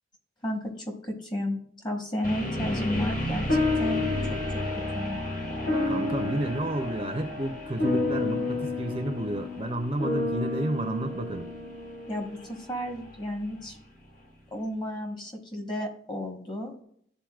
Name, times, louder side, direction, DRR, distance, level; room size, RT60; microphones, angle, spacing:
voice 1, 0.4-4.4 4.9-5.2 12.1-13.8 14.5-16.8, left 1 dB, 25° left, 3 dB, 1.2 m, -33 dB
sound 1, 2.2-14.2, left 1 dB, 45° left, 1.8 m, -35 dB
sound 2, 3.5-12.2, left 3 dB, 65° left, 2.7 m, -30 dB
voice 2, 5.9-11.5, right 1 dB, 30° right, 6 dB, 0.5 m, -31 dB
11.5 x 4.0 x 2.4 m, 0.65 s
head